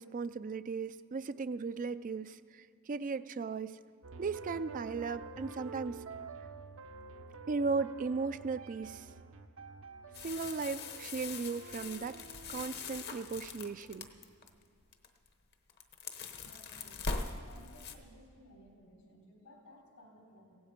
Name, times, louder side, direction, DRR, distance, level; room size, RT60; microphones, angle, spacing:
voice 1, 0.0-3.8 4.2-6.0 7.5-9.1 10.2-12.2 12.5-14.1, right 4 dB, 35° right, 13 dB, 0.4 m, -36 dB
sound 1, 4.0-14.2, right 4 dB, 65° right, 0.7 m, -49 dB
sound 2, 10.1-14.5 14.9-15.3 15.5-17.9, left 4 dB, 45° left, 1.0 m, -42 dB
voice 2, 16.4-17.1 17.4-20.6, equal, 80° left, 0 dB, 4.2 m, -58 dB
16.5 x 16.0 x 5.1 m, 2.1 s
head